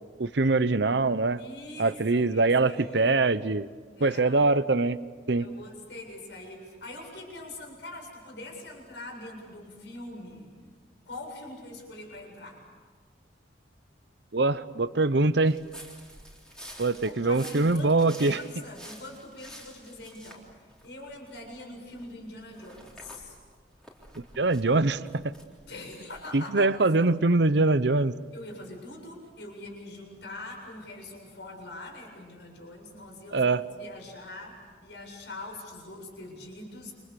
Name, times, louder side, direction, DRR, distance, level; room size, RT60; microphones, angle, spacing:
voice 1, 0.2-1.4 1.8-3.7 4.0-5.0 5.3-5.5 14.3-15.6 16.8-18.4 24.4-25.3 26.3-28.1 33.3-33.6, right 3 dB, 65° right, 15 dB, 0.9 m, -23 dB
voice 2, 1.4-3.2 4.0-4.4 5.4-10.5 11.1-12.6 17.0-23.4 25.6-26.7 28.3-36.9, left 2 dB, 65° left, 1 dB, 7.6 m, -43 dB
sound 1, 15.5-21.6 21.9-26.2, equal, 5° left, 3.6 m, -49 dB
29.5 x 27.5 x 6.9 m, 1.5 s
head